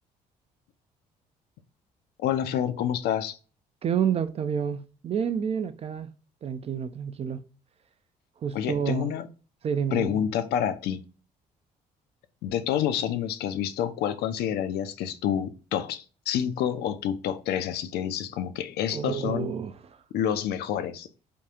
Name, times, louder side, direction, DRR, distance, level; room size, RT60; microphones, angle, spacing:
voice 1, 2.2-3.4 8.5-9.3 9.9-11.0 12.4-19.5 20.1-21.1, left 9 dB, 50° left, 0.4 m, -28 dB
voice 2, 3.8-6.1 6.4-7.4 8.4-9.1 9.6-10.2 18.9-20.0, right 7 dB, 30° right, 0.4 m, -29 dB
3.5 x 2.4 x 2.7 m
figure-of-eight pair, 50°, 21 cm